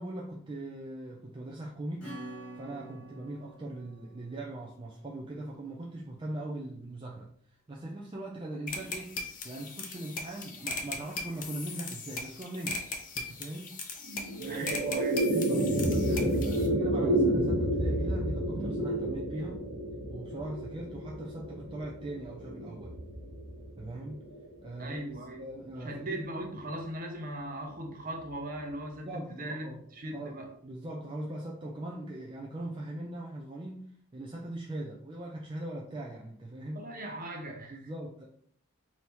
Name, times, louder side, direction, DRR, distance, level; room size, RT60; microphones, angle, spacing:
voice 1, 0.0-2.1 2.6-12.8 13.1-13.8 14.4-14.7 15.3-19.6 20.1-22.9 23.8-24.2 24.6-25.0 25.4-26.2 29.0-29.8 30.1-30.4 30.6-33.8 34.1-36.8 37.7-38.3, right 1 dB, 20° right, -2 dB, 0.4 m, -40 dB
Acoustic guitar / Strum, 2.0-6.3, right 1 dB, 5° left, 1.6 m, -48 dB
sound 1, 8.7-16.7, left 3 dB, 40° left, 0.6 m, -39 dB
sound 2, 14.0-24.6, right 1 dB, 65° right, 1.0 m, -30 dB
voice 2, 14.5-15.4 16.1-16.2 24.8-25.5 25.8-30.5 36.7-37.9, right 1 dB, 40° right, 2 dB, 0.8 m, -39 dB
3.4 x 2.8 x 4.4 m, 0.62 s
head